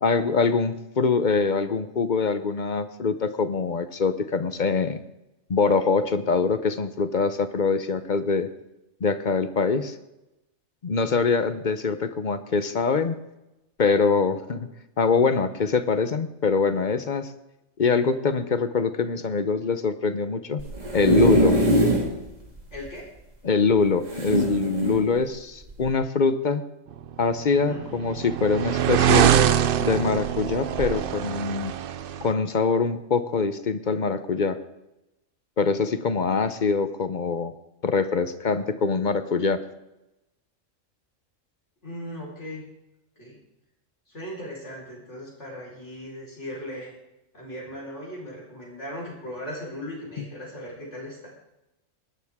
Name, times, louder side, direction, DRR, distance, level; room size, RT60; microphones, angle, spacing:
voice 1, 0.0-5.0 5.5-8.5 9.0-9.9 10.8-13.2 13.8-14.7 15.0-17.3 17.8-20.7 20.9-21.6 23.4-26.6 27.2-29.4 29.8-31.7 32.2-34.6 35.6-37.5 37.8-39.6 50.2-50.3, left 4 dB, 45° left, 12 dB, 0.8 m, -24 dB
sound 1, 20.6-22.1 22.6-22.7 22.9-23.0 24.1-25.0 25.7-25.9, right 1 dB, 30° right, 2.2 m, -21 dB
voice 2, 22.7-23.0 27.6-27.8 41.8-42.6 43.2-43.4 44.1-46.9 47.3-51.3, equal, 60° left, -5 dB, 4.8 m, -38 dB
sound 2, 27.4-32.3, right 9 dB, 60° right, 0.6 m, -23 dB
19.5 x 12.0 x 3.6 m, 0.94 s
omnidirectional pair, 1.4 m